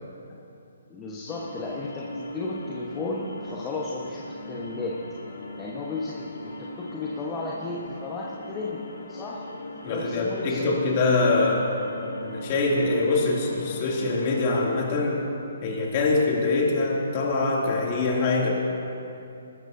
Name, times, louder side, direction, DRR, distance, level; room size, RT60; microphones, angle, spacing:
voice 1, 0.9-5.0 5.6-9.5 9.8-10.7, left 3 dB, 20° left, -4 dB, 1.2 m, -34 dB
sound 1, 1.3-14.7, left 1 dB, 80° left, 1.6 m, -39 dB
voice 2, 9.8-11.7 12.2-15.3 15.6-18.5, left 3 dB, 40° left, -2 dB, 2.7 m, -24 dB
20.5 x 13.0 x 2.8 m, 2.7 s
hypercardioid pair, 140°, 0 cm